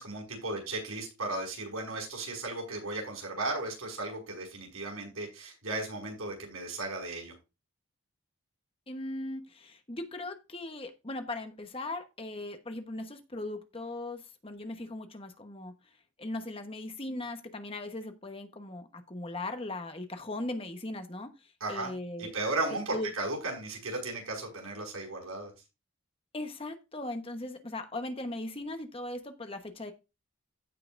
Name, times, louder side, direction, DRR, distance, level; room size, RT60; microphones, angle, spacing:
voice 1, 0.0-7.3 21.6-21.9 22.2-25.5, right 2 dB, 80° right, 0 dB, 6.1 m, -35 dB
voice 2, 8.9-15.7 16.2-21.3 21.7-22.3 22.9-23.1 26.3-29.9, left 2 dB, 25° left, 7 dB, 1.1 m, -38 dB
15.5 x 5.7 x 2.6 m, 0.26 s
head